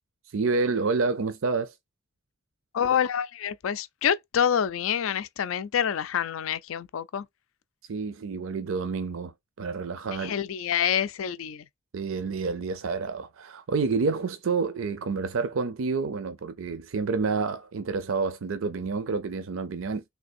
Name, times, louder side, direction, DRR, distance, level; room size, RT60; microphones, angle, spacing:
voice 1, 0.3-1.7 7.9-9.3 9.6-10.4 11.9-20.0, right 4 dB, 80° right, 0.5 m, -29 dB
voice 2, 2.7-7.2 10.2-11.6, left 8 dB, 80° left, 0.4 m, -27 dB
3.3 x 3.3 x 2.5 m
head